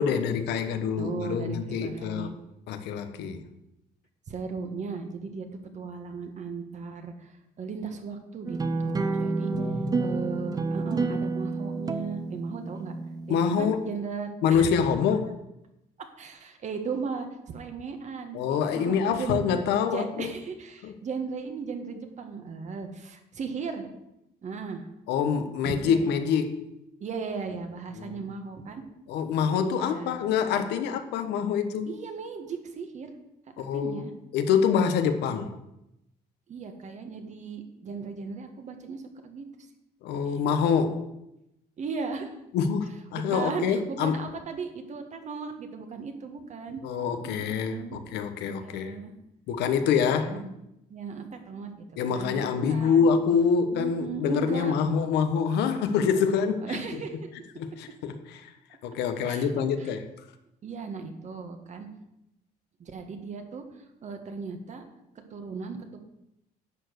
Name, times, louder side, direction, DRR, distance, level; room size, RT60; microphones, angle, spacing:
voice 1, 0.0-2.3 2.7-3.4 9.5-10.2 13.3-13.8 14.4-15.3 18.3-20.3 20.8-20.9 25.1-26.7 28.0-28.2 29.1-31.9 33.6-34.0 34.3-35.5 40.0-41.1 42.5-44.2 46.8-49.0 49.5-50.4 52.0-56.8 57.6-58.5 58.8-60.0, left 6 dB, 85° left, 9 dB, 1.2 m, -26 dB
voice 2, 1.0-2.3 4.3-5.5 5.7-9.5 10.0-12.9 13.3-14.7 16.2-18.4 18.7-19.4 19.8-23.9 24.4-24.9 25.6-26.1 27.0-28.8 29.6-30.2 31.9-33.1 33.7-34.1 36.5-39.5 40.2-40.4 41.8-42.3 43.1-46.8 47.2-48.0 48.5-49.1 49.8-50.5 50.9-53.1 53.7-55.1 55.8-56.2 56.6-57.3 59.3-59.9 60.6-61.9 62.8-63.6 64.0-64.8 65.3-66.0, right 5 dB, 45° right, 6 dB, 1.7 m, -37 dB
sound 1, 8.5-13.5, right 3 dB, 20° right, 0.8 m, -29 dB
11.0 x 4.8 x 8.0 m, 0.87 s
cardioid pair, 110°, 17 cm